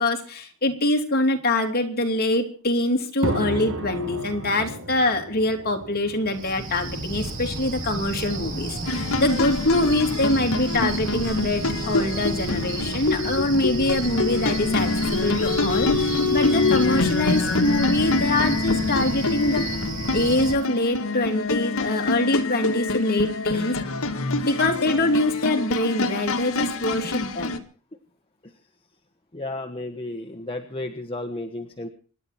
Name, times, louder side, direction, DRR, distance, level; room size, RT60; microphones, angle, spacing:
voice 1, 0.0-19.6 20.1-23.8 24.4-27.5, left 1 dB, 45° left, 3 dB, 3.0 m, -24 dB
sound 1, 3.2-20.1, right 1 dB, 60° right, 2.4 m, -38 dB
Cricket, 6.3-20.5, right 2 dB, 40° right, 7.8 m, -32 dB
sound 2, 8.9-27.6, left 3 dB, 70° left, 1.8 m, -26 dB
voice 2, 27.0-27.3 28.4-28.5 29.3-31.9, left 2 dB, 25° left, 5 dB, 1.3 m, -34 dB
26.5 x 11.0 x 4.3 m, 0.40 s
head